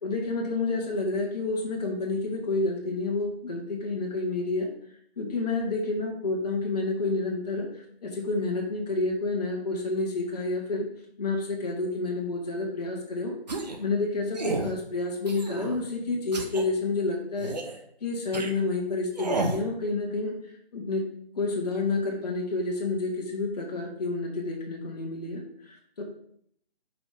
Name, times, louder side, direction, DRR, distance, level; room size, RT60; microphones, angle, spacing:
voice 1, 0.0-4.7 5.2-10.9 11.2-20.3 20.7-21.0 21.3-26.0, left 3 dB, 40° left, -1 dB, 1.2 m, -29 dB
sound 1, 13.5-13.8 14.3-14.7 15.3-15.8 16.3-16.6 17.4-17.8 18.3-18.5 19.2-19.6, right 3 dB, 40° right, 0.8 m, -31 dB
5.3 x 4.9 x 3.7 m, 0.67 s
figure-of-eight pair, 160°, 31 cm